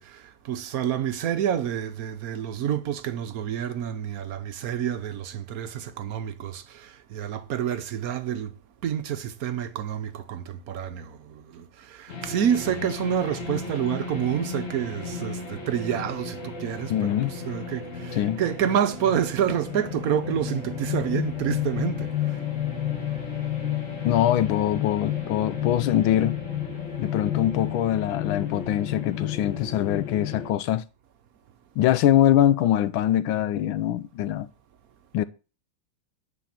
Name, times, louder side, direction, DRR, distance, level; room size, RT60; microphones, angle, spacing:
voice 1, 0.0-8.5 8.8-22.4, right 9 dB, 60° right, 1.1 m, -28 dB
sound 1, 12.1-30.5, left 8 dB, 40° left, 2.1 m, -32 dB
voice 2, 16.9-17.3 18.1-18.4 24.0-26.4 27.0-30.8 31.8-34.5 35.1-35.3, left 12 dB, 85° left, 1.5 m, -23 dB
10.0 x 4.3 x 7.4 m
omnidirectional pair, 2.2 m